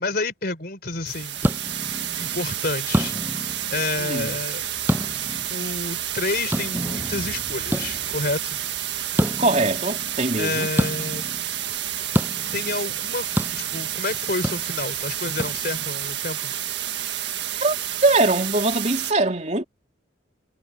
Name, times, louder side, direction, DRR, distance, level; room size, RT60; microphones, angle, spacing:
voice 1, 0.0-1.4 2.2-4.6 5.5-8.6 9.3-9.4 10.4-11.2 12.5-13.3 13.5-16.5, left 3 dB, 55° left, 4.0 m, -29 dB
sound 1, 0.9-16.1, equal, 10° right, 7.8 m, -30 dB
sound 2, 1.1-19.1, right 11 dB, 65° right, 1.7 m, -30 dB
voice 2, 4.0-4.3 9.4-10.7 17.6-17.8 18.0-19.6, right 2 dB, 35° right, 3.1 m, -22 dB
head